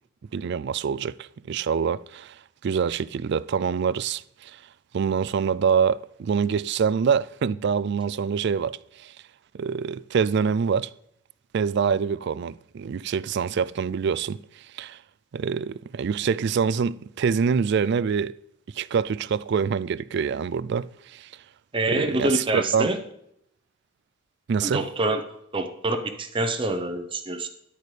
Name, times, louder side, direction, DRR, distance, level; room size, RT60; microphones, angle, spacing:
voice 1, 0.3-2.4 2.6-4.6 4.9-9.1 9.5-10.9 11.5-15.0 15.3-18.3 18.7-21.3 21.9-22.9 24.5-24.9, right 6 dB, 55° right, 0.3 m, -25 dB
voice 2, 21.7-23.0 24.6-25.2 25.5-27.5, right 2 dB, 25° right, 0.8 m, -26 dB
13.0 x 10.0 x 3.3 m
head